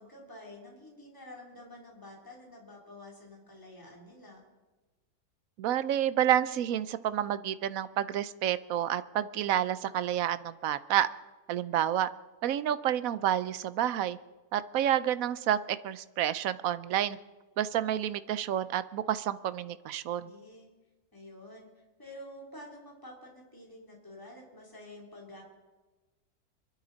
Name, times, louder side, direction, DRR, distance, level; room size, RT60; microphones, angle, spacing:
voice 1, 0.0-4.4 20.2-20.7 21.1-25.4, left 1 dB, 15° left, -2 dB, 3.1 m, -49 dB
voice 2, 5.6-11.1 11.5-12.1 12.4-14.2 14.5-17.2 17.6-20.3, right 11 dB, 70° right, 15 dB, 1.0 m, -29 dB
23.5 x 12.5 x 4.0 m, 1.2 s
omnidirectional pair, 1.7 m